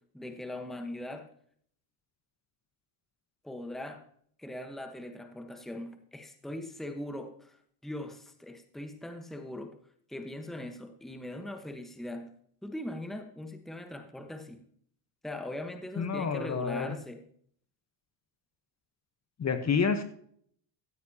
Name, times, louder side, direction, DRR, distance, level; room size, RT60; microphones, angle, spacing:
voice 1, 0.1-1.3 3.4-4.0 4.4-9.7 10.1-12.3 12.6-14.6 15.2-17.2 19.6-19.8, left 1 dB, ahead, 6 dB, 1.1 m, -40 dB
voice 2, 16.0-16.9 19.4-20.0, left 6 dB, 35° left, 9 dB, 1.1 m, -28 dB
15.5 x 9.5 x 2.9 m, 0.62 s
supercardioid pair, 95°, 49 cm